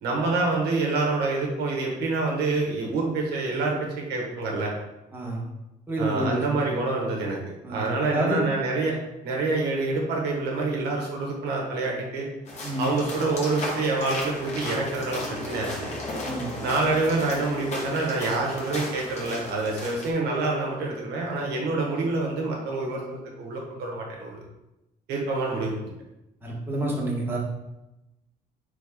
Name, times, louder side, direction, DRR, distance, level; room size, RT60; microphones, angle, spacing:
voice 1, 0.0-4.7 6.0-7.4 7.7-9.0 9.2-12.3 12.8-15.9 16.6-24.4 25.1-25.7, right 3 dB, 75° right, -1 dB, 1.0 m, -27 dB
voice 2, 5.9-6.5 7.6-8.4 12.6-12.9 16.2-16.5 26.4-27.4, right 1 dB, 10° right, -4 dB, 1.1 m, -28 dB
sound 1, 12.4-20.1, left 1 dB, 40° left, 1.1 m, -35 dB
3.5 x 3.5 x 3.6 m, 0.95 s
cardioid pair, 110°, 17 cm